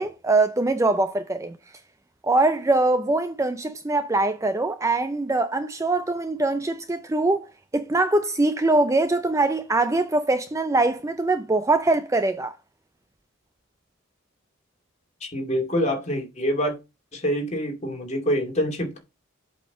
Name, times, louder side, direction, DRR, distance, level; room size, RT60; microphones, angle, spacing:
voice 1, 0.0-1.6 2.2-7.5 7.7-12.5, right 2 dB, 15° right, 0.4 m, -22 dB
voice 2, 15.2-16.7 17.1-19.0, equal, 35° left, 2.4 m, -26 dB
7.9 x 4.4 x 5.5 m
head